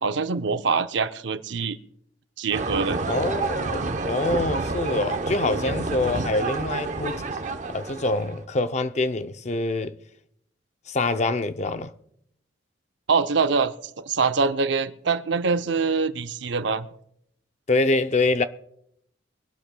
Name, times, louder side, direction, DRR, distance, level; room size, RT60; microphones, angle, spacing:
voice 1, 0.0-1.8 2.4-3.0 13.1-16.9, right 4 dB, 80° right, 0.6 m, -24 dB
sound 1, 2.5-8.4, right 3 dB, 40° right, 0.7 m, -29 dB
voice 2, 3.1-7.2 7.7-9.9 10.9-11.9 17.7-18.4, left 2 dB, 40° left, 0.5 m, -25 dB
23.5 x 12.0 x 2.2 m
head